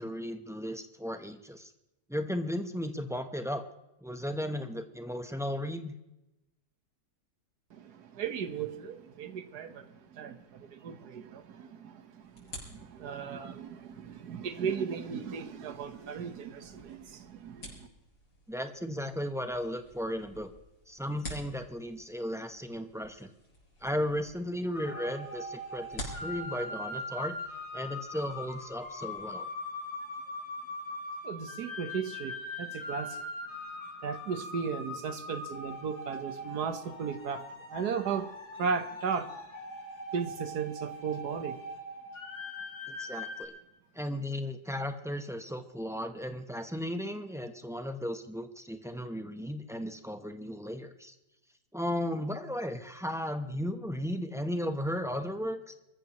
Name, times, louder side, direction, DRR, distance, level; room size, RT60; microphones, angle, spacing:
voice 1, 0.0-1.7 2.1-3.6 4.0-5.9 18.5-20.5 20.9-23.3 23.8-27.4 27.7-29.5 43.0-43.5 43.9-51.1 51.7-55.7, equal, 5° right, 7 dB, 0.4 m, -35 dB
voice 2, 7.7-17.9 31.2-33.2 34.0-39.3 40.1-41.6, right 6 dB, 70° right, 10 dB, 1.6 m, -36 dB
sound 1, 12.2-29.2, left 1 dB, 55° left, 4.9 m, -50 dB
sound 2, 24.7-43.4, left 1 dB, 70° left, 3.1 m, -41 dB
25.0 x 14.5 x 3.0 m, 0.93 s
omnidirectional pair, 1.8 m